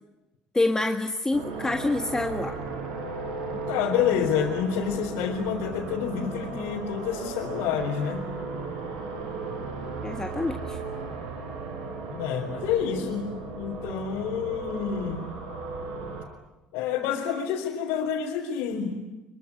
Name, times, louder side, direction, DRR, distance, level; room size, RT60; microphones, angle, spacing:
voice 1, 0.5-2.5 10.0-10.8, left 2 dB, 15° left, 5 dB, 1.8 m, -27 dB
sound 1, 1.3-16.2, right 4 dB, 85° right, 5.1 m, -36 dB
voice 2, 3.7-8.3 12.1-13.3 13.6-15.2 16.7-19.0, left 8 dB, 75° left, -3 dB, 4.2 m, -28 dB
25.0 x 24.0 x 9.9 m, 1.0 s
supercardioid pair, 75°, 4 cm